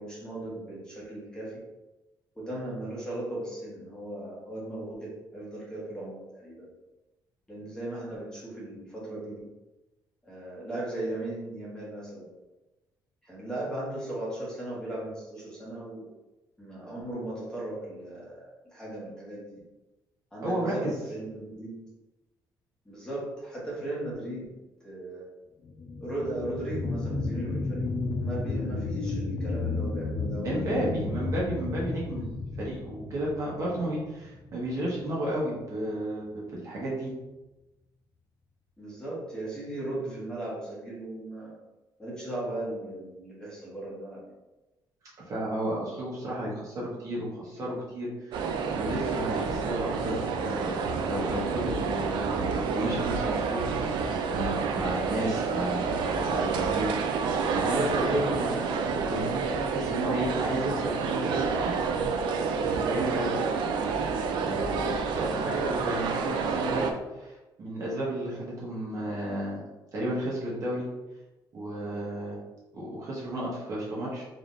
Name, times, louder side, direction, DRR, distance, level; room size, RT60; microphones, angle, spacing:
voice 1, 0.0-1.6 2.3-6.7 7.5-9.5 10.2-12.2 13.2-16.1 16.6-19.6 20.3-21.8 22.8-24.5 24.8-25.3 26.0-27.9 28.2-30.9 38.8-41.5 42.0-44.2, right 1 dB, 10° left, -7 dB, 1.2 m, -37 dB
voice 2, 20.4-20.9 30.4-32.3 32.6-37.1 45.3-48.4 48.7-61.7 62.8-63.4 64.4-69.6 69.9-70.9 71.5-72.4 72.7-74.2, right 1 dB, 45° right, -5 dB, 1.2 m, -33 dB
sound 1, 25.6-34.7 35.2-35.3, left 3 dB, 40° left, 0.4 m, -33 dB
sound 2, 48.3-66.9, right 5 dB, 80° right, 0.4 m, -29 dB
3.9 x 3.3 x 2.6 m, 1.1 s
cardioid pair, 145°, 8 cm